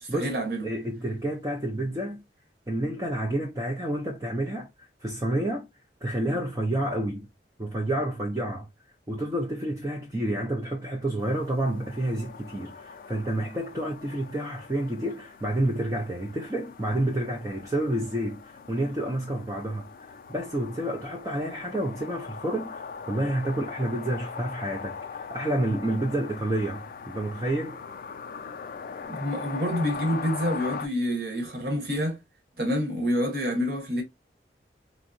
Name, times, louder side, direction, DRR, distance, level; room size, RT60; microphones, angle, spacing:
voice 1, 0.0-0.7 29.1-32.2 32.6-34.0, equal, 60° right, 1.1 m, -28 dB
voice 2, 0.6-2.2 2.7-5.7 6.0-7.3 7.6-8.7 9.1-27.8, right 1 dB, 20° right, 0.4 m, -29 dB
sound 1, 11.2-30.9, left 5 dB, 50° left, 0.3 m, -41 dB
3.5 x 2.0 x 2.5 m
head